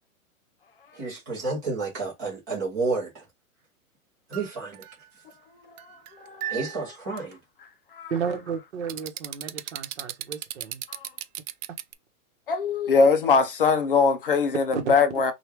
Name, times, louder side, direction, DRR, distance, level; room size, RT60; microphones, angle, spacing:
voice 1, 0.9-3.2 4.3-4.9 6.5-7.4, right 3 dB, 10° right, 0.7 m, -30 dB
sound 1, 4.3-5.3 5.8-6.8 7.2-7.3 8.9-11.9, right 12 dB, 85° right, 0.6 m, -35 dB
voice 2, 6.1-6.6 7.9-8.1 10.9-11.1 12.5-15.3, left 5 dB, 40° left, 0.4 m, -22 dB
voice 3, 8.1-10.8 14.7-14.9, right 6 dB, 50° right, 1.0 m, -32 dB
3.0 x 2.4 x 3.4 m
hypercardioid pair, 180°, 43 cm